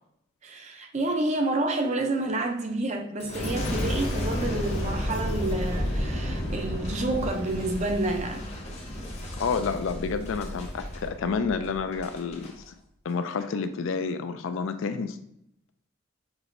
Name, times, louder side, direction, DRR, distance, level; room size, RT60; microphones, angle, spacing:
voice 1, 0.4-8.5, right 2 dB, 35° right, 0.5 m, -29 dB
Boom, 3.2-12.5 13.1-13.5, equal, 30° left, 0.8 m, -32 dB
voice 2, 9.4-12.7 13.0-15.2, left 5 dB, 70° left, 0.4 m, -29 dB
6.0 x 3.0 x 2.5 m
head